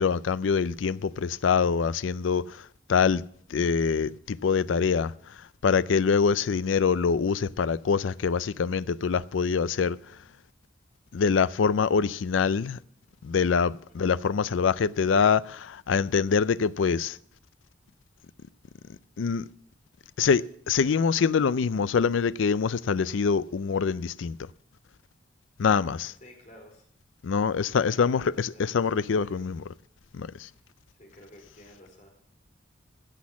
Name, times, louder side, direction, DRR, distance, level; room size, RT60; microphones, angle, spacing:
voice 1, 0.0-2.6 2.9-3.2 3.5-5.1 5.6-10.0 11.1-12.8 13.2-17.2 19.2-19.4 20.2-24.4 25.6-26.1 27.2-29.7 30.1-30.3, left 6 dB, 80° left, 0.4 m, -24 dB
voice 2, 26.2-26.8 27.8-28.2 28.5-29.5 31.0-32.1, left 1 dB, 40° left, 4.5 m, -51 dB
15.5 x 6.3 x 7.2 m
head